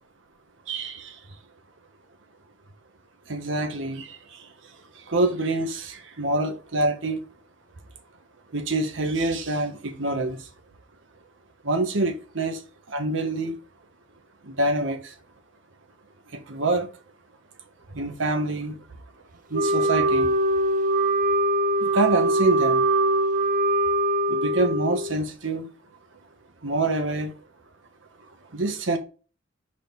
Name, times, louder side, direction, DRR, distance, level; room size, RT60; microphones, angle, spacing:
voice 1, 0.7-1.1 3.3-4.1 5.1-7.2 8.5-10.4 11.6-12.6 12.9-13.5 14.5-15.0 16.3-16.9 17.9-18.8 19.5-20.3 21.8-22.8 24.3-25.7 26.6-27.3 28.5-29.0, right 2 dB, 75° right, 1.2 m, -26 dB
Wind instrument woodwind instrument, 19.5-25.2, right 1 dB, 45° right, 0.5 m, -22 dB
6.3 x 4.3 x 3.8 m
head